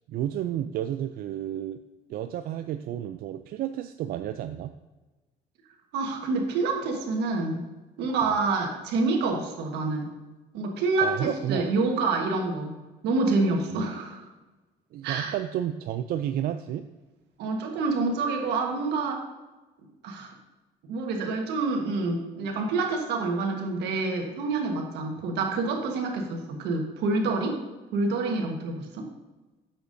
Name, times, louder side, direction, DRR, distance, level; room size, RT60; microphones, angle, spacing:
voice 1, 0.1-1.8 2.1-4.7 8.2-8.3 11.0-11.7 13.7-13.9 14.9-16.9, right 11 dB, 60° right, 8 dB, 0.4 m, -31 dB
voice 2, 5.9-7.6 8.0-10.2 10.5-14.2 15.0-15.3 17.4-19.2 20.0-20.3 20.8-27.6 27.9-29.1, right 3 dB, 85° right, 2 dB, 1.4 m, -27 dB
8.8 x 7.0 x 2.7 m, 1.2 s
cardioid pair, 110°, 17 cm